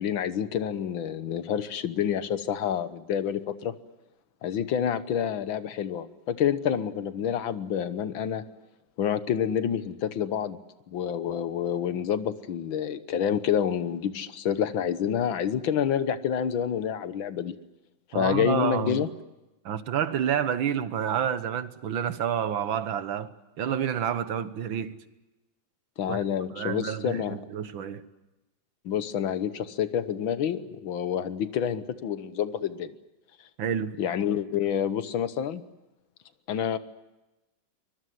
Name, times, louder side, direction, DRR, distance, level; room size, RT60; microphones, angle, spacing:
voice 1, 0.0-3.7 4.4-8.4 9.0-10.6 10.9-17.6 18.1-19.1 26.0-27.4 28.9-32.9 34.0-35.6 36.5-36.8, left 8 dB, 85° left, 1.9 m, -28 dB
voice 2, 18.1-19.1 19.7-23.3 23.6-24.9 26.1-26.2 26.5-28.0 33.6-34.0, right 9 dB, 80° right, 1.9 m, -29 dB
24.0 x 21.0 x 9.4 m
omnidirectional pair, 2.1 m